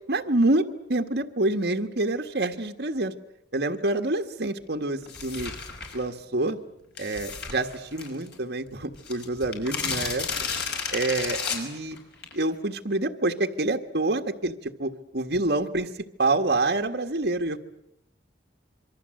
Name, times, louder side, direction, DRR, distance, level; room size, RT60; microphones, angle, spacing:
voice 1, 0.1-0.6 0.9-3.1 3.5-5.5 5.9-6.6 7.0-10.3 10.9-12.0 12.3-15.9 16.2-17.6, right 2 dB, 60° right, 5 dB, 1.6 m, -27 dB
sound 1, 5.1-6.0 7.0-8.3 8.7-8.8 8.9-12.4, left 5 dB, 60° left, 5.8 m, -32 dB
26.5 x 23.5 x 7.7 m, 0.79 s
head